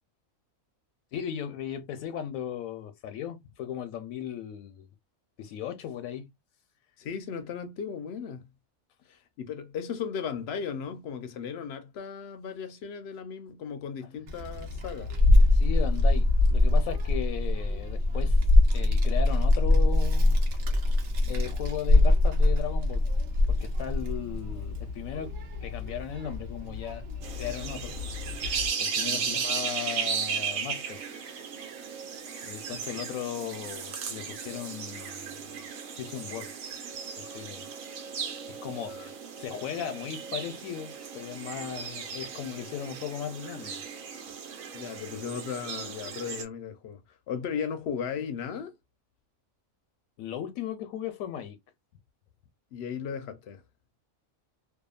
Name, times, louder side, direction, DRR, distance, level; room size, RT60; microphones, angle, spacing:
voice 1, 1.1-4.9 5.4-6.3 15.5-18.4 18.7-20.4 21.3-23.1 23.5-27.0 27.3-28.0 28.8-31.0 32.4-35.5 36.0-36.5 37.2-37.7 38.6-38.9 39.4-43.8 50.2-51.6, left 9 dB, 85° left, 1.0 m, -37 dB
voice 2, 7.0-8.5 9.1-15.1 29.1-29.5 38.9-39.1 44.7-47.0 47.3-48.7 52.7-53.6, left 7 dB, 65° left, 0.7 m, -36 dB
Child speech kid speaking, 14.3-28.7, left 2 dB, 60° right, 0.9 m, -24 dB
sound 1, 27.2-46.4, right 6 dB, 85° right, 1.2 m, -36 dB
2.7 x 2.3 x 2.2 m
omnidirectional pair, 1.4 m